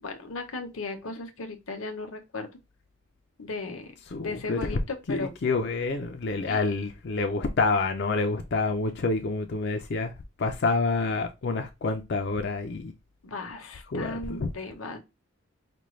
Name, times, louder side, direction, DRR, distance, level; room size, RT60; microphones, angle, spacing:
voice 1, 0.0-2.5 3.4-3.9 4.2-5.3 6.5-6.7 13.2-15.0, left 3 dB, 75° left, 0.8 m, -36 dB
voice 2, 4.1-4.8 5.1-10.1 10.4-12.9 13.9-14.5, left 3 dB, 50° left, 0.5 m, -28 dB
5.1 x 2.3 x 3.1 m
head